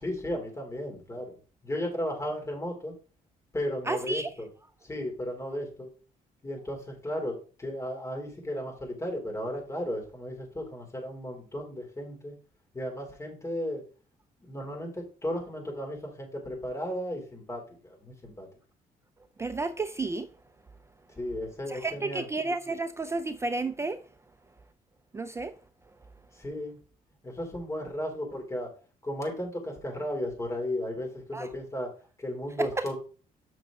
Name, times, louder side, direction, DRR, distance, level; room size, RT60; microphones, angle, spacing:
voice 1, 0.0-1.3 1.6-2.9 3.5-4.5 4.8-5.9 6.4-12.3 12.7-13.8 14.4-18.5 21.2-22.3 26.4-26.8 27.2-28.7 29.0-31.9 32.2-32.9, left 1 dB, 20° left, 3.1 m, -34 dB
voice 2, 3.9-4.3 19.4-20.3 21.7-24.0 25.1-25.5 31.3-31.5 32.6-32.9, right 3 dB, 20° right, 0.4 m, -31 dB
7.1 x 6.2 x 3.7 m
cardioid pair, 120°, 15 cm